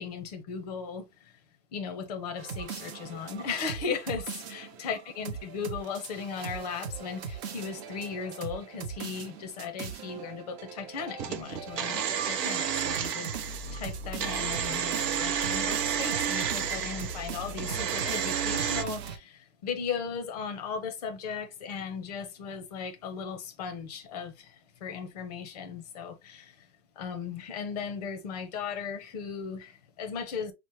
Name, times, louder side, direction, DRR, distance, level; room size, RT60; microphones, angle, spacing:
voice 1, 0.0-1.3 1.7-26.7 27.0-30.5, left 6 dB, 25° left, 0.5 m, -37 dB
sound 1, 2.4-19.2, right 5 dB, 40° right, 0.8 m, -40 dB
sound 2, 11.2-18.8, right 8 dB, 80° right, 0.9 m, -31 dB
5.4 x 2.1 x 2.9 m
hypercardioid pair, 155°, 49 cm